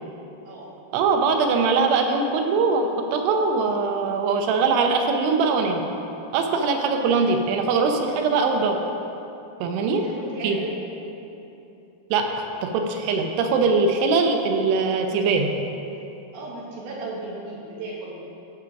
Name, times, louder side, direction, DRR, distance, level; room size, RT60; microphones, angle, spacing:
voice 1, 0.9-5.8 6.3-8.8 9.6-10.0 10.4-10.6 12.1-12.3 12.6-15.5, right 4 dB, 85° right, 4 dB, 2.8 m, -21 dB
voice 2, 9.8-10.8 16.3-18.1, right 2 dB, 70° right, -4 dB, 3.3 m, -35 dB
13.5 x 4.7 x 5.9 m, 2.9 s
omnidirectional pair, 4.6 m